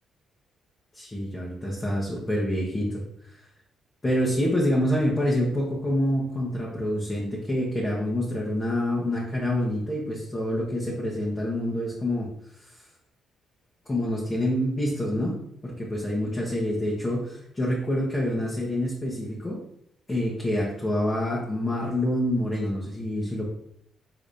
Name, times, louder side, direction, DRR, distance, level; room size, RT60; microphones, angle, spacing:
voice 1, 0.9-3.0 4.0-12.3 13.9-15.3 15.6-19.6 20.1-23.4, left 1 dB, 20° left, -6 dB, 1.3 m, -27 dB
4.9 x 3.9 x 2.7 m, 0.71 s
cardioid pair, 90°, 0 cm